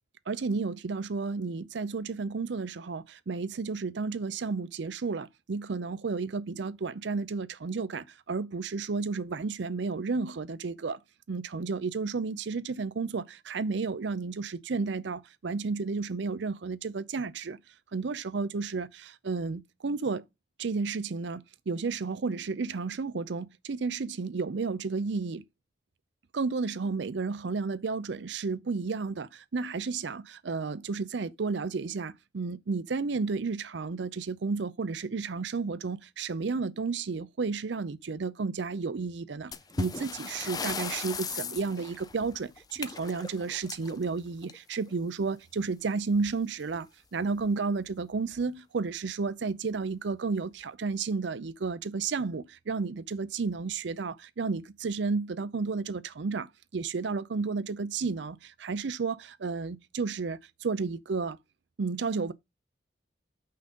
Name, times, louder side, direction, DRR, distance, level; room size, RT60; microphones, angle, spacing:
voice 1, 0.3-11.0 11.3-17.6 17.9-20.2 20.6-25.4 26.3-61.4 61.8-62.3, right 4 dB, 70° right, 0.5 m, -32 dB
sound 1, 39.5-44.9 46.1-46.3 46.6-46.7 47.4-47.5 48.1-48.4, left 4 dB, 20° left, 0.4 m, -38 dB
5.7 x 3.7 x 5.3 m
head